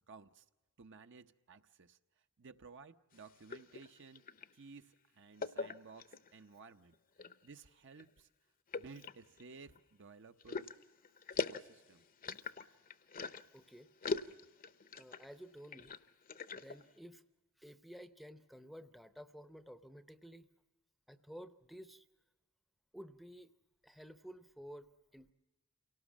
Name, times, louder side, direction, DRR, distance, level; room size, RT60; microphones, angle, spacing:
voice 1, 0.1-0.4 0.8-2.0 2.4-4.2 4.5-7.0 7.4-8.3 8.7-10.7 11.5-12.0, right 4 dB, 55° right, 8 dB, 0.8 m, -56 dB
sound 1, 3.1-4.5 5.4-6.3 6.9-7.5 7.9-8.0 8.7-9.8 10.4-13.6 14.0-15.3 15.6-16.8, left 4 dB, 40° left, 0.7 m, -42 dB
voice 2, 13.5-13.9 14.9-15.9 16.5-17.2 17.6-20.5 21.1-22.1 22.9-23.5 23.8-25.3, equal, ahead, 10 dB, 0.7 m, -53 dB
28.0 x 18.0 x 7.3 m, 1.1 s
head